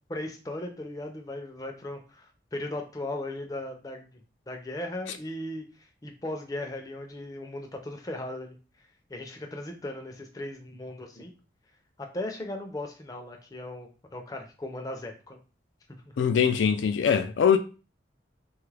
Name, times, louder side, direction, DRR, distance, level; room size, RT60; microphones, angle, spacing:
voice 1, 0.1-4.2 4.5-5.7 6.0-8.6 9.1-11.3 12.0-15.4 16.1-16.2, left 1 dB, 20° left, 0.4 m, -37 dB
voice 2, 16.2-17.6, left 7 dB, 80° left, 0.3 m, -22 dB
3.2 x 2.3 x 3.2 m
head